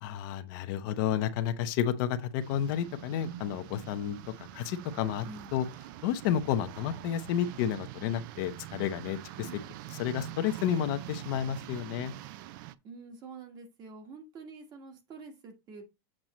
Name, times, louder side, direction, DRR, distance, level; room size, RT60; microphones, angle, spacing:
voice 1, 0.0-4.2 4.5-5.3 5.5-5.6 6.0-9.6 9.9-12.1, left 9 dB, 50° left, 0.8 m, -31 dB
sound 1, 2.4-12.7, right 14 dB, 55° right, 0.5 m, -44 dB
voice 2, 12.8-15.8, right 3 dB, 30° right, 1.4 m, -47 dB
7.5 x 5.3 x 3.0 m
supercardioid pair, 155°, 13 cm